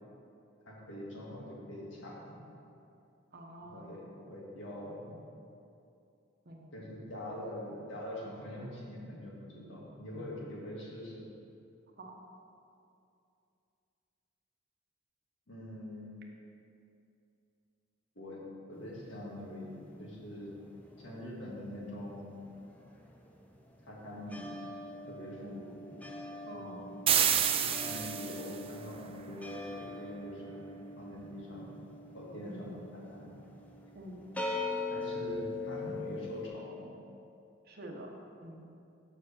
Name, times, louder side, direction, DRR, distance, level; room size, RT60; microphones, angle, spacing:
voice 1, 0.7-2.4 3.7-5.2 6.7-11.3 15.5-16.2 18.2-18.4 18.7-20.5 21.0-22.4 23.8-24.5 25.1-26.0 26.5-26.7 27.6-30.6 31.0-31.7 32.1-33.4 34.9-36.9, left 1 dB, 70° left, -5 dB, 1.8 m, -44 dB
voice 2, 3.3-4.0 6.5-6.7 12.0-12.1 25.4-25.6 26.5-26.9 32.4-32.7 33.9-34.2 37.7-38.1 38.4-38.7, right 1 dB, 55° right, 1 dB, 0.9 m, -47 dB
sound 1, 18.8-21.4 21.7-36.5, left 3 dB, 10° left, 0.6 m, -42 dB
sound 2, 27.1-28.6, right 9 dB, 30° right, 0.3 m, -28 dB
6.3 x 4.7 x 6.6 m, 2.6 s
head